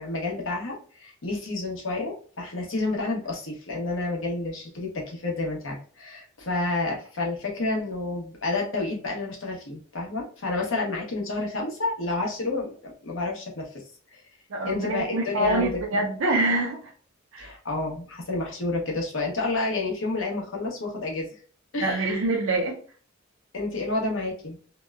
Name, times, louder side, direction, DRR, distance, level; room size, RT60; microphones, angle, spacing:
voice 1, 0.0-13.7 14.1-14.2 14.6-15.8 17.4-21.3 21.7-22.2 23.5-24.6, left 2 dB, 65° left, 0.9 m, -30 dB
voice 2, 14.5-16.8 17.3-17.5 21.8-22.8, right 2 dB, 70° right, 0.5 m, -25 dB
2.8 x 2.1 x 2.3 m
head